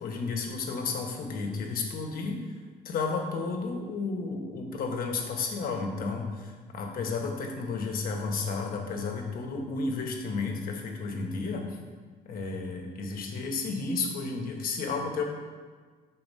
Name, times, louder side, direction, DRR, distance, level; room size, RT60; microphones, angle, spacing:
voice 1, 0.0-2.4 2.8-11.7 12.2-15.3, left 4 dB, 60° left, 2 dB, 1.1 m, -32 dB
5.9 x 4.2 x 5.5 m, 1.5 s
cardioid pair, 110°, 17 cm